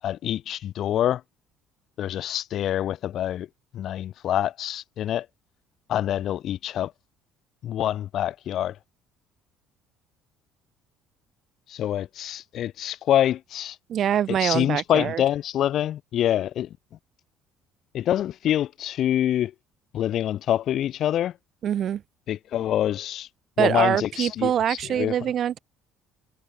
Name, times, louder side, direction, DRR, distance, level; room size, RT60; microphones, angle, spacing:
voice 1, 0.0-1.2 2.0-3.5 3.7-5.3 5.9-6.9 7.6-8.8 11.7-13.8 14.3-16.7 17.9-19.5 19.9-21.3 22.3-23.3 23.6-25.2, left 11 dB, 50° left, 7.0 m, -26 dB
voice 2, 13.9-15.2 21.6-22.0 23.6-25.6, right 10 dB, 45° right, 5.2 m, -24 dB
cardioid pair, 135°, 0 cm